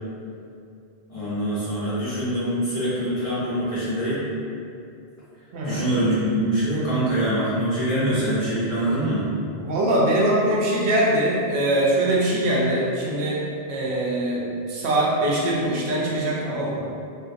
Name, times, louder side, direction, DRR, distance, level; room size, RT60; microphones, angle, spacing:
voice 1, 1.1-4.2 5.6-9.2, right 1 dB, 40° left, -11 dB, 0.6 m, -24 dB
voice 2, 5.5-5.9 9.6-13.4 13.7-16.9, right 1 dB, 85° right, -5 dB, 0.9 m, -22 dB
2.5 x 2.2 x 2.4 m, 2.5 s
omnidirectional pair, 1.1 m